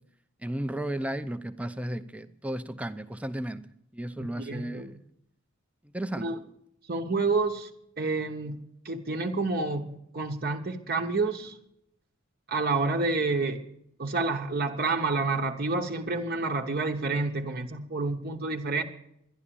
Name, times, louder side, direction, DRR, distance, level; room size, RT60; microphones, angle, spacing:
voice 1, 0.4-3.6 3.9-5.0 5.9-6.4, right 1 dB, 5° right, 9 dB, 0.6 m, -34 dB
voice 2, 4.2-4.9 6.2-6.4 6.9-7.7 8.0-8.6 8.8-11.6 12.5-13.6 14.0-18.8, right 3 dB, 45° right, 2 dB, 1.0 m, -29 dB
11.5 x 11.0 x 8.7 m, 0.75 s
head